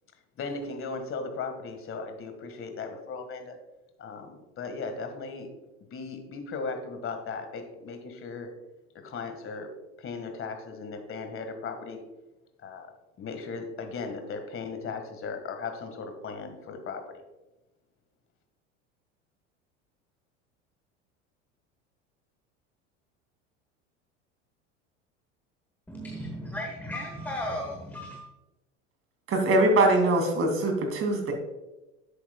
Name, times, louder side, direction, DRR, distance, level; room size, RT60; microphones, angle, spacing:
voice 1, 0.4-3.6 4.0-5.5 5.9-8.5 8.9-12.0 12.6-12.9 13.2-17.2, left 4 dB, 35° left, 6 dB, 1.8 m, -37 dB
voice 2, 25.9-28.2, equal, 5° left, 1 dB, 1.2 m, -35 dB
voice 3, 29.3-31.3, right 2 dB, 35° right, 4 dB, 2.6 m, -22 dB
10.5 x 8.3 x 2.3 m, 1.0 s
hypercardioid pair, 80°, 37 cm